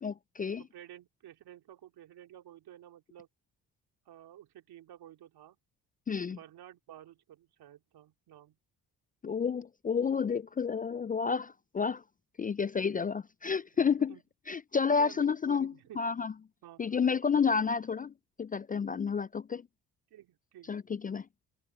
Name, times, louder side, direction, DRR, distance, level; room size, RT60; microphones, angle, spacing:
voice 1, 0.0-0.6 6.1-6.4 9.2-12.0 12.4-14.2 14.5-16.3 16.8-19.6 20.7-21.3, left 6 dB, 25° left, 0.4 m, -30 dB
voice 2, 0.6-3.3 4.0-5.6 6.3-8.6 14.1-14.2 14.9-16.0 16.6-17.0 20.1-20.8, right 12 dB, 75° right, 3.4 m, -52 dB
supercardioid pair, 65°, 39 cm